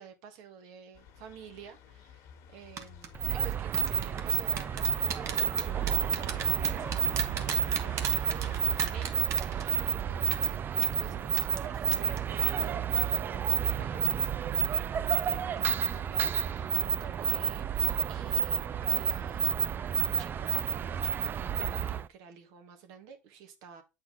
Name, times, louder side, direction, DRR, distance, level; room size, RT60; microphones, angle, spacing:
voice 1, 0.0-19.7 20.0-23.8, right 7 dB, 70° right, 1.6 m, -50 dB
sound 1, 0.9-9.1, left 9 dB, 65° left, 1.6 m, -51 dB
sound 2, 2.8-3.1 3.7-10.0 10.3-10.5 10.8-10.9 11.4-11.7 11.9-12.2 12.5-12.7, right 8 dB, 55° right, 1.1 m, -36 dB
sound 3, 3.1-22.1, right 8 dB, 35° right, 0.4 m, -30 dB
7.7 x 4.3 x 3.8 m
supercardioid pair, 95°, 6 cm